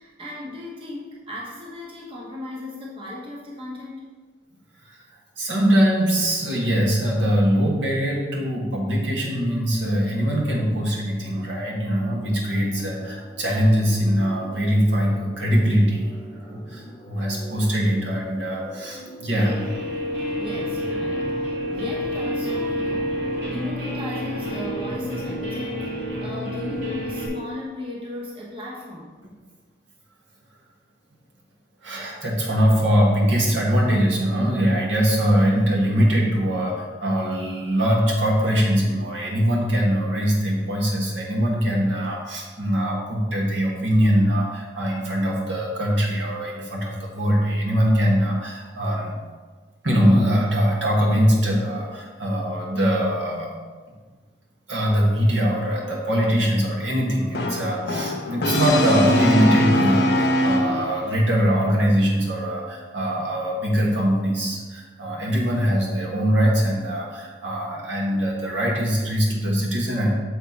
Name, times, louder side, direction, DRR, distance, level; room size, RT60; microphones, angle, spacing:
voice 1, 0.0-4.1 20.4-29.2 67.8-67.9, left 1 dB, 30° right, -4 dB, 0.9 m, -36 dB
voice 2, 5.4-16.0 16.3-19.6 31.8-49.1 49.8-53.5 54.7-70.1, equal, 90° right, -2 dB, 1.5 m, -22 dB
sound 1, 11.9-25.8, left 1 dB, 20° left, 0.4 m, -42 dB
Guitar, 19.4-27.3, equal, 65° right, 1.5 m, -29 dB
Brass instrument, 57.3-61.2, equal, 55° left, 0.7 m, -22 dB
6.7 x 4.1 x 4.4 m, 1.4 s
head